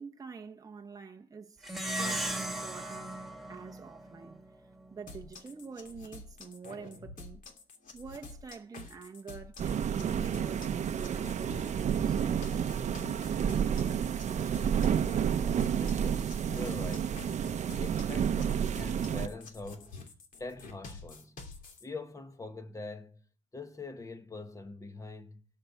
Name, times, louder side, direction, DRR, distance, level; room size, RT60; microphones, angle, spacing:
voice 1, 0.0-1.6 1.9-3.2 3.5-4.4 4.9-7.4 7.9-12.2, right 5 dB, 20° right, 1.0 m, -46 dB
Plucked string instrument, 1.6-4.4, right 1 dB, ahead, 1.9 m, -36 dB
sound 1, 5.1-21.8, left 3 dB, 50° left, 2.8 m, -49 dB
sound 2, 9.6-19.3, right 8 dB, 45° right, 0.9 m, -30 dB
voice 2, 15.8-17.3 17.8-20.0 20.4-21.4 21.8-23.3 23.5-25.4, left 3 dB, 20° left, 1.5 m, -43 dB
17.0 x 5.8 x 7.0 m
cardioid pair, 110°, 17 cm